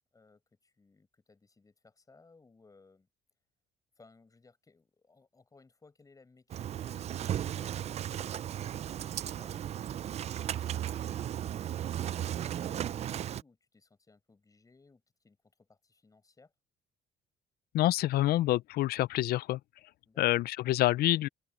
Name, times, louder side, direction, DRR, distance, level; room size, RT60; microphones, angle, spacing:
voice 1, 0.1-3.1 4.0-9.6 10.2-16.5 20.0-20.2, left 3 dB, 20° left, 6.6 m, -62 dB
Engine starting, 6.5-13.4, right 11 dB, 40° right, 0.4 m, -35 dB
voice 2, 17.7-19.6 20.2-21.3, left 15 dB, 65° left, 0.5 m, -27 dB
open air
cardioid pair, 110°, 17 cm